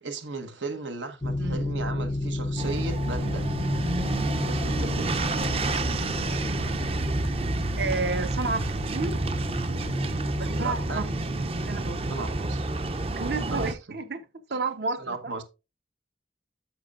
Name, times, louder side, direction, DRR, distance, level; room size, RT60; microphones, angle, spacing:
voice 1, 0.0-3.5 4.4-5.2 10.5-11.1 12.1-12.7 13.5-13.6 15.0-15.4, right 3 dB, 90° right, 1.2 m, -36 dB
sound 1, 1.2-12.5, left 2 dB, 30° left, 0.4 m, -33 dB
sound 2, 2.6-13.7, right 2 dB, 30° right, 0.6 m, -29 dB
voice 2, 7.8-9.2 10.4-11.1 11.6-12.1 13.2-14.2 14.5-15.3, right 4 dB, 60° right, 0.9 m, -31 dB
10.5 x 6.9 x 2.5 m
head